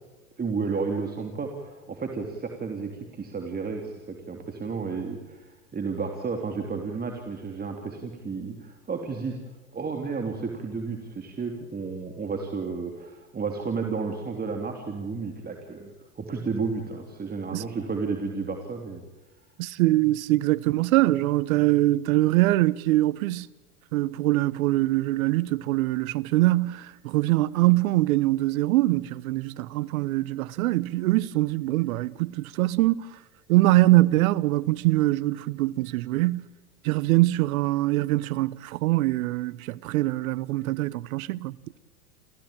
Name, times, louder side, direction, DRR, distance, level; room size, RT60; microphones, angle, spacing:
voice 1, 0.4-9.4 9.7-19.0, right 4 dB, 20° right, 3.3 m, -32 dB
voice 2, 19.6-23.5 23.9-33.2 33.5-36.5 36.8-41.6, right 18 dB, 70° right, 1.0 m, -23 dB
28.5 x 15.5 x 8.9 m
hypercardioid pair, 100°, 44 cm